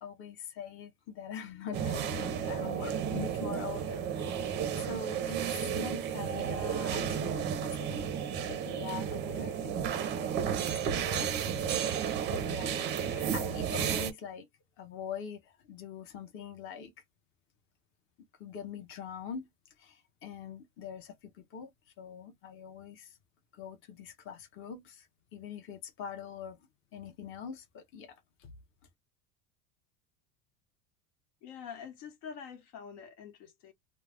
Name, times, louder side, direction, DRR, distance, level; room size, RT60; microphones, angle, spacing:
voice 1, 0.0-5.4 5.7-8.1 8.4-11.3 12.0-14.5 14.8-16.9 18.4-19.5 19.8-23.2 23.5-26.6 26.9-28.5, left 7 dB, 35° left, 0.7 m, -44 dB
sound 1, 1.7-14.1, right 8 dB, 30° right, 0.4 m, -33 dB
voice 2, 31.4-33.7, left 7 dB, 75° left, 1.0 m, -46 dB
2.2 x 2.0 x 3.3 m
cardioid pair, 160°, 37 cm